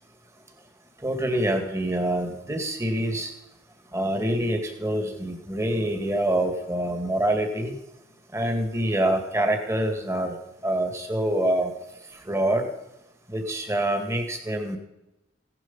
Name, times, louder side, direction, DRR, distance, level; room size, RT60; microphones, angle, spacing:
voice 1, 1.0-3.3 3.9-7.8 8.3-10.3 10.6-11.7 12.3-12.6 13.3-14.8, right 1 dB, 15° right, 4 dB, 2.1 m, -25 dB
16.5 x 11.0 x 5.6 m, 0.92 s
head